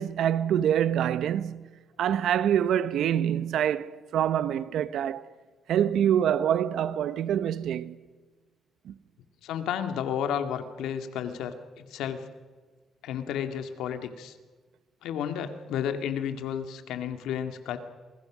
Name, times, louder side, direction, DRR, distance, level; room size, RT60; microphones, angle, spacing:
voice 1, 0.0-1.7 2.0-5.2 5.7-8.0 8.8-8.9, right 9 dB, 75° right, 1.1 m, -25 dB
voice 2, 9.4-12.2 13.0-14.3 15.0-17.8, left 8 dB, 85° left, 2.1 m, -32 dB
27.5 x 21.0 x 6.2 m
cardioid pair, 90°, 0 cm